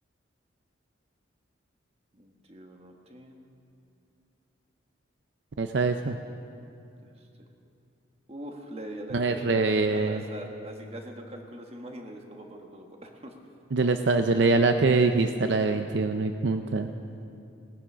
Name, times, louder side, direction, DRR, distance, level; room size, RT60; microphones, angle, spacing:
voice 1, 2.1-3.5 7.0-7.3 8.3-9.6 9.9-13.3, right 1 dB, 30° right, 3 dB, 1.3 m, -42 dB
voice 2, 5.6-6.2 9.1-10.2 13.7-16.9, right 3 dB, 65° right, 6 dB, 0.5 m, -24 dB
18.5 x 10.0 x 6.1 m, 2.6 s
head